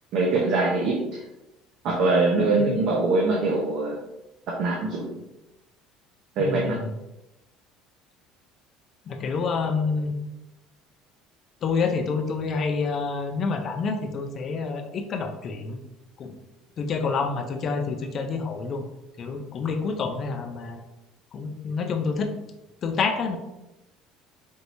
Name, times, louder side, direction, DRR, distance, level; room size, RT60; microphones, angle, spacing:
voice 1, 0.1-1.2 1.8-4.0 4.6-5.2 6.4-6.8, right 3 dB, 50° right, -2 dB, 0.7 m, -23 dB
voice 2, 6.4-6.9 9.1-10.2 11.6-15.8 16.2-16.4 16.8-18.8 19.2-20.8 21.3-22.3 22.8-23.4, left 4 dB, 35° left, 5 dB, 0.5 m, -28 dB
4.4 x 3.2 x 2.6 m, 0.93 s
cardioid pair, 155°, 0 cm